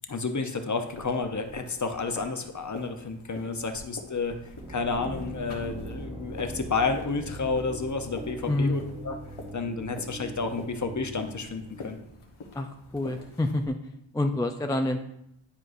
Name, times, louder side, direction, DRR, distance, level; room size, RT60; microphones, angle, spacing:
voice 1, 0.1-4.4 4.7-9.2 9.5-12.0, left 4 dB, 35° left, 6 dB, 0.8 m, -31 dB
sound 1, 0.8-13.7, left 3 dB, 75° left, 1.3 m, -47 dB
sound 2, 4.3-12.1, right 1 dB, 15° right, 0.7 m, -41 dB
voice 2, 8.5-8.9 12.5-13.8 14.1-15.0, left 1 dB, 10° left, 6 dB, 0.3 m, -27 dB
10.0 x 4.7 x 2.6 m, 0.79 s
wide cardioid pair, 75°, 49 cm